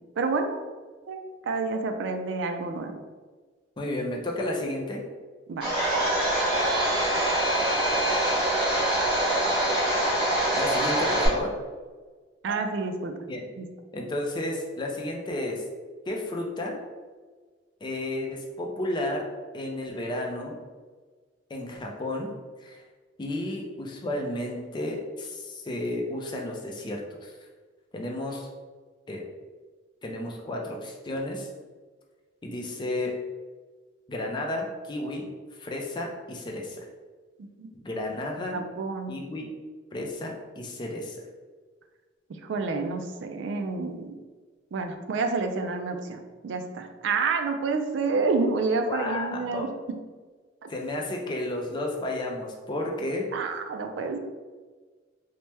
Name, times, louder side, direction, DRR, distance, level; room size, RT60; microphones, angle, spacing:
voice 1, 0.2-0.6 1.1-3.0 5.5-5.7 12.4-13.2 13.6-13.7 37.6-37.7 38.5-39.2 42.3-44.2 44.7-50.0 50.6-50.7 53.3-54.2, right 4 dB, 70° right, 6 dB, 0.3 m, -29 dB
voice 2, 3.8-5.0 10.6-11.5 13.3-13.4 13.9-15.6 16.1-16.7 17.8-19.3 19.5-20.6 21.5-22.3 22.6-22.8 23.2-27.3 27.9-28.5 29.1-29.2 30.0-31.5 32.4-33.2 34.1-35.3 35.6-36.8 37.7-38.6 39.1-39.5 39.9-41.2 48.9-49.7 50.7-53.2, left 1 dB, 25° left, 0 dB, 0.4 m, -32 dB
Domestic sounds home sounds, 5.6-11.3, right 1 dB, 30° right, 1.1 m, -24 dB
2.9 x 2.1 x 3.2 m, 1.4 s
head